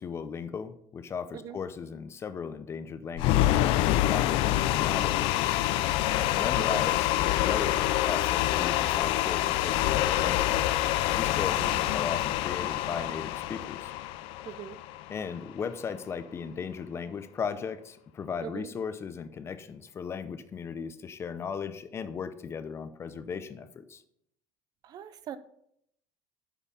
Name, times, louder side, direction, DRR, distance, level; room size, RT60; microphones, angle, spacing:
voice 1, 0.0-5.4 6.4-10.7 11.2-13.9 15.1-24.0, left 6 dB, 25° left, 12 dB, 0.6 m, -37 dB
sound 1, 3.2-15.3, left 14 dB, 65° left, 0.5 m, -26 dB
voice 2, 11.3-11.8 14.4-14.8 18.4-18.7 24.8-25.4, right 9 dB, 40° right, 14 dB, 0.6 m, -41 dB
8.4 x 5.5 x 5.6 m, 0.72 s
cardioid pair, 145°, 10 cm